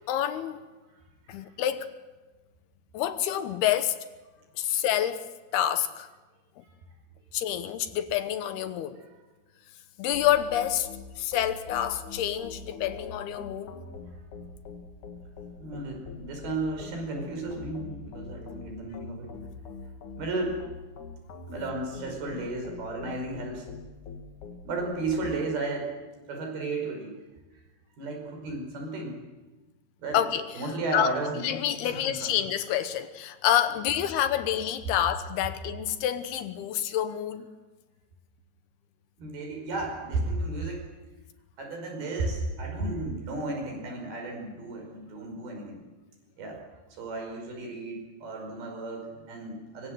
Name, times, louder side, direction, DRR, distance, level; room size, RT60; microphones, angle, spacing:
voice 1, 0.1-0.6 1.3-1.9 2.9-4.0 4.6-5.3 5.5-6.1 6.6-6.7 7.3-9.0 10.0-10.9 11.2-13.8 30.1-30.4 30.9-31.1 31.4-37.5, left 11 dB, 75° left, 2.9 m, -28 dB
sound 1, 10.1-25.4, left 4 dB, 55° left, 3.1 m, -44 dB
voice 2, 15.6-19.3 20.2-20.6 21.5-23.7 24.7-25.9 26.3-27.2 28.0-29.2 30.0-30.2 30.5-32.4 39.2-40.9 41.6-45.8 46.4-46.6 46.9-49.9, right 2 dB, 65° right, 7.0 m, -33 dB
24.5 x 24.0 x 7.8 m
omnidirectional pair, 4.8 m